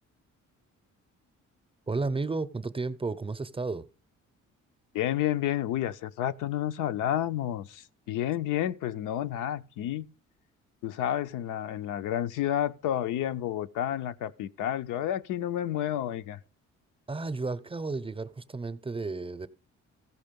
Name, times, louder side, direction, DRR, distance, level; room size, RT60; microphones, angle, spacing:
voice 1, 1.9-3.9 17.1-19.5, right 3 dB, 20° right, 0.6 m, -32 dB
voice 2, 4.9-10.1 10.8-16.4, left 11 dB, 90° left, 0.6 m, -30 dB
15.0 x 5.4 x 5.2 m
cardioid pair, 90°, 30 cm